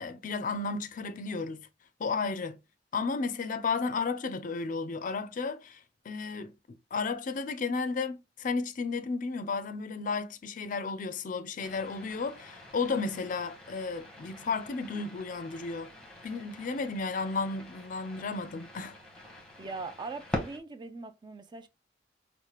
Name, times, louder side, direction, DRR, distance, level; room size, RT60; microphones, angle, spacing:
voice 1, 0.0-1.7 2.0-2.6 2.9-6.5 6.9-15.9 16.2-19.0, left 4 dB, 45° left, 0.4 m, -33 dB
sound 1, 11.6-20.6, left 1 dB, 5° left, 0.9 m, -44 dB
voice 2, 19.6-21.7, right 3 dB, 25° right, 0.3 m, -41 dB
4.7 x 2.1 x 2.9 m
head